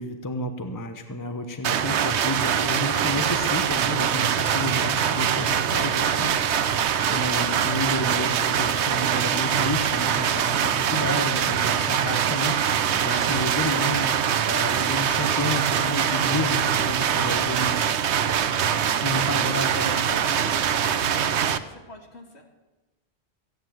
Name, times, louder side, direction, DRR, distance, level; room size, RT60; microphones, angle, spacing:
voice 1, 0.0-6.8 7.1-14.1 14.5-17.9 19.0-20.0, left 1 dB, 20° left, 6 dB, 0.9 m, -31 dB
sound 1, 1.6-21.6, right 8 dB, 75° right, 1.0 m, -23 dB
voice 2, 1.9-2.2 18.5-22.4, left 1 dB, 65° left, 2 dB, 2.3 m, -43 dB
sound 2, 6.9-14.7 15.2-16.0 16.4-19.3 19.6-20.8, left 1 dB, 35° left, 6.7 m, -54 dB
15.5 x 9.3 x 7.7 m, 1.1 s
omnidirectional pair, 1.2 m